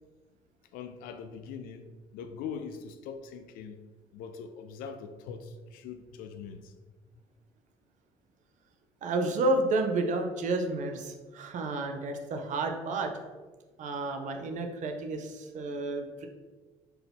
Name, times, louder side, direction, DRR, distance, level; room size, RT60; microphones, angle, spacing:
voice 1, 0.7-3.8 4.1-6.7, left 6 dB, 65° left, 8 dB, 0.4 m, -42 dB
voice 2, 9.0-13.1 13.8-16.3, right 2 dB, 55° right, 5 dB, 0.6 m, -31 dB
3.8 x 2.8 x 3.5 m, 1.3 s
hypercardioid pair, 60°, 15 cm